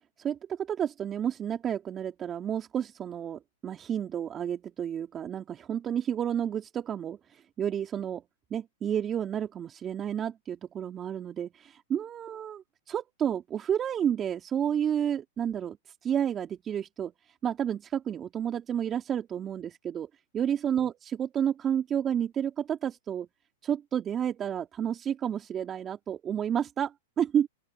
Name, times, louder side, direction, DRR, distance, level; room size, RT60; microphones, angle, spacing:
voice 1, 0.2-8.2 8.5-15.8 16.0-17.1 17.4-23.3 23.6-27.5, right 9 dB, 25° right, 3.3 m, -31 dB
open air
hypercardioid pair, 115°, 0 cm